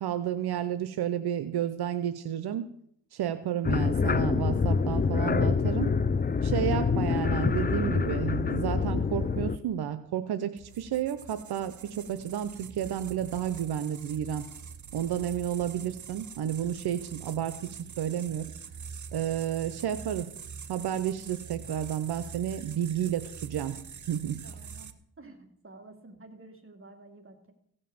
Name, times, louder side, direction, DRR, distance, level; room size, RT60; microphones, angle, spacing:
voice 1, 0.0-2.7 3.1-5.9 6.4-14.4 14.9-17.5 18.0-18.5 19.1-20.3 20.7-23.8 24.1-24.4, right 10 dB, 80° right, 11 dB, 0.8 m, -31 dB
sound 1, 3.6-9.6, left 5 dB, 25° left, 0.5 m, -26 dB
sound 2, 10.6-24.9, right 7 dB, 50° right, 1.0 m, -44 dB
voice 2, 24.4-24.9 25.2-27.5, right 2 dB, 35° right, 4 dB, 2.6 m, -51 dB
16.0 x 5.5 x 7.0 m, 0.70 s
cardioid pair, 65°, 38 cm